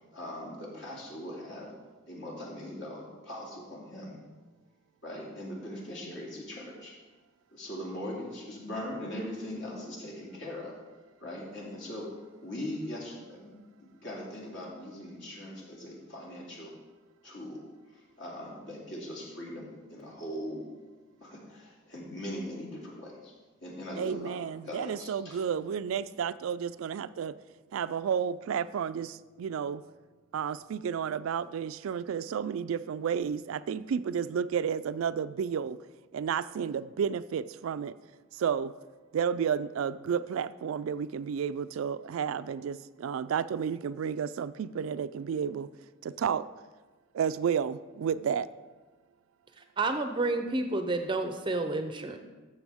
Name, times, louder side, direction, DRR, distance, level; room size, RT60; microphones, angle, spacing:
voice 1, 0.0-1.7 2.0-4.2 5.0-6.9 7.5-10.7 11.2-13.5 13.8-16.7 17.2-17.6 17.9-20.6 21.2-23.3 23.6-25.4, left 1 dB, 60° left, -3 dB, 2.6 m, -40 dB
voice 2, 24.0-27.3 27.7-29.8 30.3-35.8 36.1-37.9 38.3-38.7 39.1-45.7 46.0-46.5 47.1-48.5, right 7 dB, 80° right, 15 dB, 0.3 m, -31 dB
voice 3, 49.8-52.2, right 2 dB, 25° right, 7 dB, 0.5 m, -30 dB
13.5 x 6.9 x 3.5 m, 1.3 s
head